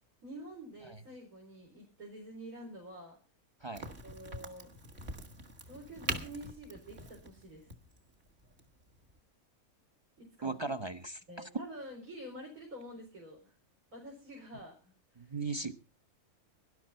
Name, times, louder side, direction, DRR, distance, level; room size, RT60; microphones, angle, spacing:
voice 1, 0.2-3.2 4.0-4.7 5.7-7.7 10.2-10.7 11.3-13.5 13.9-15.4, right 1 dB, 75° right, -1 dB, 5.0 m, -48 dB
Crack, 3.7-9.2, right 1 dB, 45° right, 2.0 m, -43 dB
voice 2, 10.4-11.5 15.2-15.7, right 3 dB, 25° right, 11 dB, 0.6 m, -38 dB
19.0 x 11.5 x 4.4 m, 0.34 s
omnidirectional pair, 1.5 m